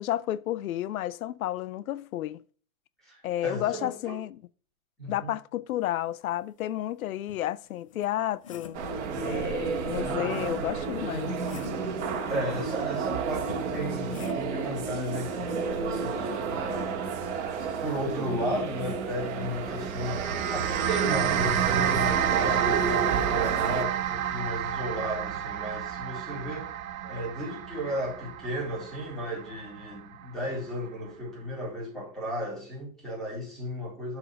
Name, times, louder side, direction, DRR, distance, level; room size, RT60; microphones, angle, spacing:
voice 1, 0.0-2.4 3.2-4.4 5.1-8.9 9.2-11.4, left 13 dB, 90° left, 0.6 m, -31 dB
voice 2, 3.0-4.2 5.0-5.3 12.3-17.1 17.8-26.7 27.0-34.2, equal, ahead, 4.0 m, -34 dB
sound 1, 6.7-6.8 7.3-8.9 10.6-11.9 13.5-14.7 16.2-16.4, left 6 dB, 25° left, 0.4 m, -47 dB
sound 2, 8.7-23.8, right 5 dB, 55° right, 1.9 m, -32 dB
sound 3, 19.7-30.2, right 10 dB, 80° right, 1.2 m, -30 dB
7.7 x 4.9 x 6.3 m
hypercardioid pair, 165°, 41 cm